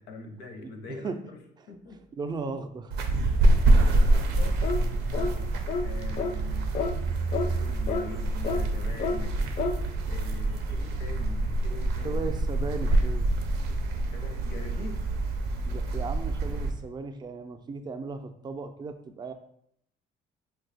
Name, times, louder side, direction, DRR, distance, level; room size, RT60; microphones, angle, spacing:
voice 1, 0.1-1.4 1.7-2.0 3.9-4.7 5.8-6.7 7.4-9.4 10.1-12.2 14.1-15.1, left 3 dB, 85° left, 3 dB, 0.6 m, -43 dB
voice 2, 0.6-1.3 1.6-1.7 2.1-2.9 5.2-5.6 12.0-13.3 15.7-19.3, right 4 dB, 25° right, 8 dB, 0.3 m, -36 dB
sound 1, 2.9-16.7, right 2 dB, 85° right, 0.5 m, -26 dB
sound 2, 4.6-4.8 5.1-5.3 5.7-5.9 6.2-6.3 6.7-6.9 7.3-7.5 7.9-8.0 8.4-8.6 9.0-9.2 9.6-9.8, left 5 dB, 45° left, 0.4 m, -29 dB
2.6 x 2.2 x 4.0 m, 0.70 s
cardioid pair, 110°, 17 cm